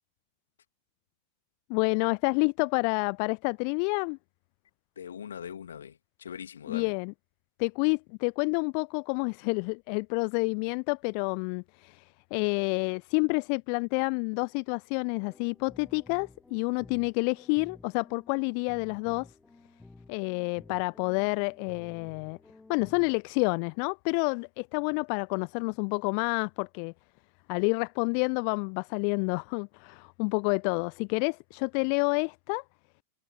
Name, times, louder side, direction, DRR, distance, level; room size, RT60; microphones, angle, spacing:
voice 1, 1.7-4.2 6.7-7.1 7.6-19.3 20.1-22.4 22.7-26.9 27.5-32.6, left 40 dB or more, 45° left, 0.4 m, -29 dB
voice 2, 5.0-6.9, left 8 dB, 65° left, 2.5 m, -41 dB
sound 1, 15.2-23.2, left 2 dB, 10° left, 1.5 m, -54 dB
figure-of-eight pair, 90°, 0 cm